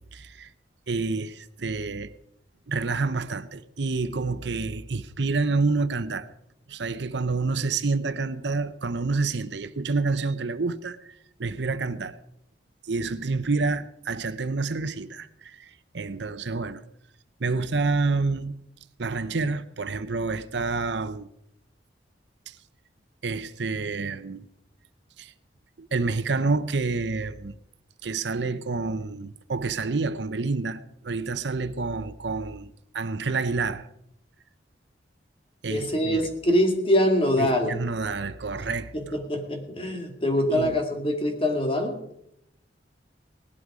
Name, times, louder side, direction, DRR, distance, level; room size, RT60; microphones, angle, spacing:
voice 1, 0.1-0.5 0.9-2.1 2.7-6.3 6.7-11.0 11.4-12.2 12.9-16.8 17.4-18.6 19.0-21.3 22.5-22.6 23.2-24.5 25.2-25.3 25.8-27.5 28.0-33.9 35.6-36.3 37.4-39.2 40.5-40.8, right 3 dB, 75° right, 0.8 m, -28 dB
voice 2, 35.7-37.7 38.6-38.7 38.9-42.0, left 1 dB, 30° left, 2.2 m, -24 dB
18.5 x 12.0 x 4.9 m
head